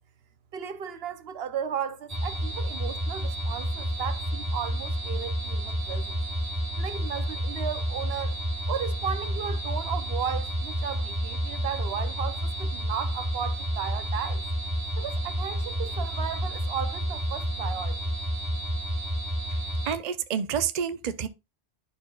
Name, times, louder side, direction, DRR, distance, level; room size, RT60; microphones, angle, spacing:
voice 1, 0.5-6.2 6.8-8.4 8.7-14.4 15.0-18.1, right 8 dB, 70° right, 0.9 m, -35 dB
sound 1, 2.1-20.0, equal, 15° right, 1.0 m, -30 dB
voice 2, 19.9-21.3, right 8 dB, 45° right, 0.6 m, -28 dB
11.0 x 4.4 x 2.3 m
omnidirectional pair, 1.1 m